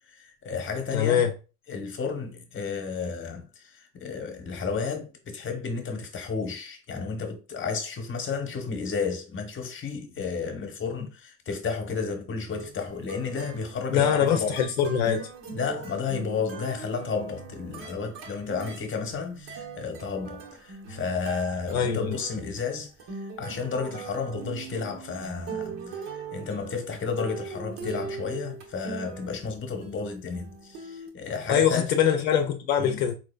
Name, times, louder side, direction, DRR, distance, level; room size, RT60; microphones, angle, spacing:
voice 1, 0.1-1.3 1.7-14.6 15.5-31.9 32.8-33.1, left 5 dB, 30° left, 1.1 m, -32 dB
voice 2, 0.9-1.3 13.9-15.3 21.7-22.2 31.5-33.1, left 8 dB, 80° left, 0.6 m, -23 dB
sound 1, 12.5-29.5 29.8-31.1, right 5 dB, 55° right, 1.1 m, -40 dB
3.8 x 2.9 x 2.3 m
hypercardioid pair, 75°, 41 cm